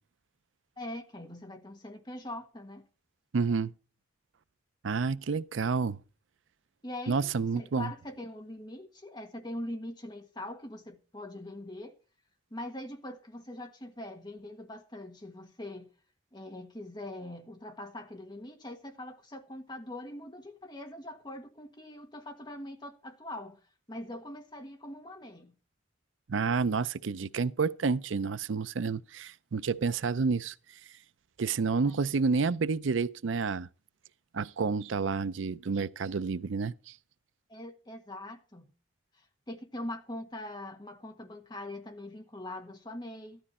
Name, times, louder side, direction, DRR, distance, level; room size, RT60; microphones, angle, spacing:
voice 1, 0.8-2.8 6.8-11.9 12.5-15.9 16.3-23.6 23.9-25.5 31.8-32.0 37.5-38.7 39.1-43.4, left 1 dB, 25° left, 1.6 m, -42 dB
voice 2, 3.3-3.7 4.8-6.0 7.1-7.9 26.3-30.5 31.4-33.7 34.3-36.9, right 5 dB, 85° right, 0.5 m, -29 dB
13.5 x 12.0 x 4.3 m
head